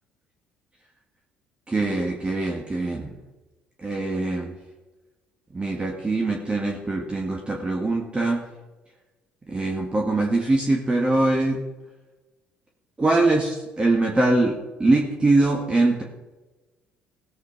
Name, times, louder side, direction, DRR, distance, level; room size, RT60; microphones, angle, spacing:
voice 1, 1.7-3.1 3.8-4.5 5.5-8.4 9.5-11.6 13.0-16.0, right 2 dB, 25° right, 0 dB, 1.8 m, -23 dB
17.0 x 8.0 x 4.7 m, 1.2 s
hypercardioid pair, 60°, 4 cm